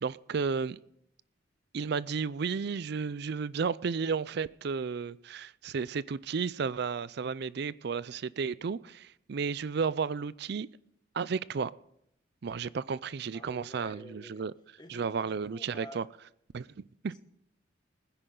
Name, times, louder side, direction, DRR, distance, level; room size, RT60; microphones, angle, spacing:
voice 1, 0.0-0.8 1.7-10.7 11.1-11.7 12.4-14.5 14.9-16.0 16.5-17.1, right 5 dB, 60° right, 0.4 m, -33 dB
voice 2, 13.3-14.4 14.8-16.0, left 1 dB, 20° left, 1.3 m, -49 dB
21.0 x 10.0 x 3.9 m
head